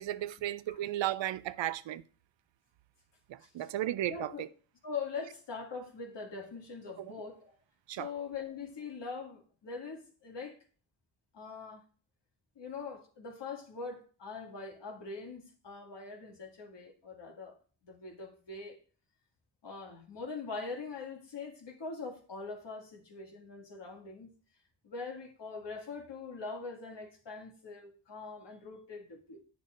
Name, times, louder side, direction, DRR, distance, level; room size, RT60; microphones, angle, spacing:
voice 1, 0.0-2.0 3.3-4.5 7.9-8.1, right 13 dB, 75° right, 0.6 m, -34 dB
voice 2, 3.4-3.7 4.1-4.4 4.8-7.5 7.9-10.6 11.3-11.8 12.6-17.6 17.8-18.8 19.6-24.3 24.8-29.4, left 4 dB, 65° left, 2.3 m, -42 dB
9.3 x 6.6 x 2.5 m
cardioid pair, 60°, 45 cm